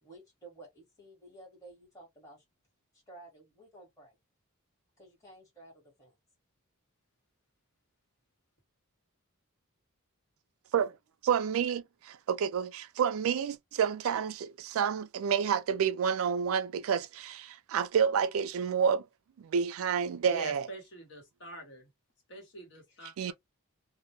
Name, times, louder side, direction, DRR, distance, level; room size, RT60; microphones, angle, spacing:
voice 1, 0.0-2.4 3.1-4.1 5.0-5.7 6.0-6.1, right 2 dB, 15° left, 1.1 m, -53 dB
voice 2, 11.2-19.0 19.4-20.7 23.2-23.3, right 7 dB, 65° right, 0.3 m, -29 dB
voice 3, 20.3-21.9 22.3-23.3, equal, 55° left, 1.1 m, -45 dB
2.2 x 2.0 x 2.8 m
head